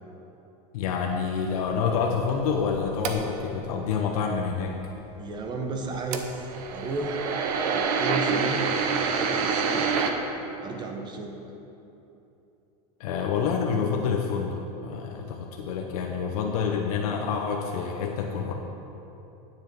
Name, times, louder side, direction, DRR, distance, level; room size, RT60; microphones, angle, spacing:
voice 1, 0.7-4.8 13.0-18.5, left 6 dB, 75° left, 1 dB, 0.8 m, -27 dB
sound 1, 1.1-3.6 5.9-10.1, right 5 dB, 70° right, 0.9 m, -27 dB
voice 2, 5.2-6.3 6.7-7.3 7.7-8.6 9.0-10.1 10.6-11.3, right 2 dB, 20° right, 3 dB, 0.7 m, -33 dB
9.6 x 7.2 x 4.6 m, 3.0 s
supercardioid pair, 160°, 19 cm